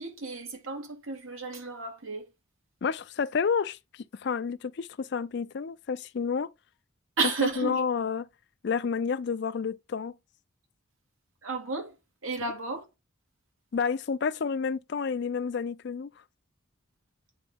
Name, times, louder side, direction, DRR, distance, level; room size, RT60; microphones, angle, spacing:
voice 1, 0.0-2.3 7.2-7.8 11.4-11.9 12.2-12.8, right 3 dB, 85° right, 1.9 m, -32 dB
voice 2, 2.8-6.5 7.4-8.3 8.6-10.2 12.4-12.5 13.7-16.1, left 6 dB, 55° left, 0.4 m, -30 dB
8.7 x 3.7 x 3.5 m
head